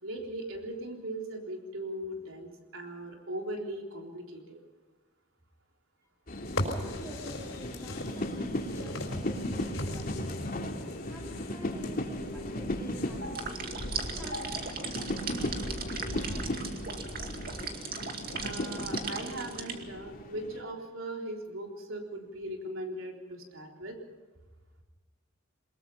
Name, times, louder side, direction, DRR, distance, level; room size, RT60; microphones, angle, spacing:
voice 1, 0.0-4.6 13.2-13.4 14.2-14.5 18.4-24.0, right 1 dB, 90° right, 1 dB, 3.8 m, -39 dB
sound 1, 6.3-20.6, left 1 dB, 45° left, 2.7 m, -36 dB
sound 2, 6.4-13.6, left 1 dB, 80° left, 4.5 m, -40 dB
voice 2, 6.8-10.5 11.0-13.5 14.1-14.3 14.9-16.5, equal, 15° right, -4 dB, 5.1 m, -48 dB
sound 3, 13.3-19.8, right 5 dB, 50° right, 2.3 m, -38 dB
22.5 x 21.5 x 5.7 m, 1.3 s
head